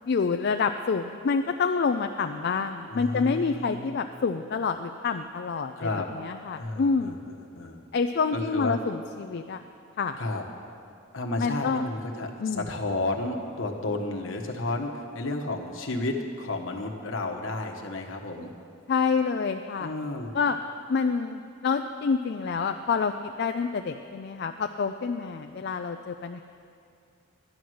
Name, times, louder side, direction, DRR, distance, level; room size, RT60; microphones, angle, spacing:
voice 1, 0.1-7.2 7.9-9.6 10.0-10.1 11.4-11.8 12.4-12.7 18.9-19.9 20.3-20.6 20.9-26.4, left 5 dB, 50° left, 7 dB, 0.4 m, -27 dB
voice 2, 2.9-4.0 5.8-6.1 6.6-7.8 8.3-8.8 10.2-10.4 11.1-18.5 19.8-20.3, left 2 dB, 70° left, 2 dB, 1.2 m, -32 dB
12.0 x 9.4 x 6.4 m, 2.4 s
head